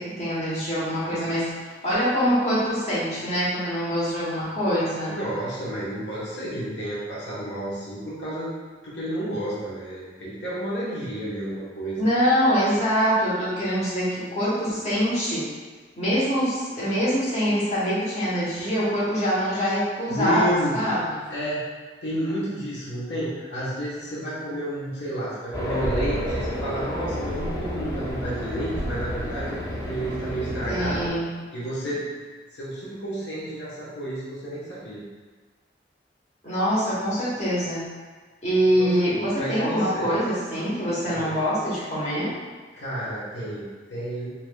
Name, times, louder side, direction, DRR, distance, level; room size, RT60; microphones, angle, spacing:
voice 1, 0.0-1.5 1.8-5.2 12.0-15.5 16.0-21.2 30.7-31.3 36.4-37.8 38.4-42.3, equal, 40° left, -9 dB, 1.1 m, -24 dB
voice 2, 5.1-8.5 8.8-12.0 20.1-20.8 21.3-21.6 22.0-31.1 31.5-32.1 32.5-35.1 38.8-38.9 39.3-40.1 41.1-41.3 42.7-44.3, right 1 dB, 85° left, -8 dB, 1.1 m, -31 dB
Race car auto racing, 25.5-31.1, equal, 20° left, 0.6 m, -30 dB
4.7 x 2.8 x 2.3 m, 1.4 s
head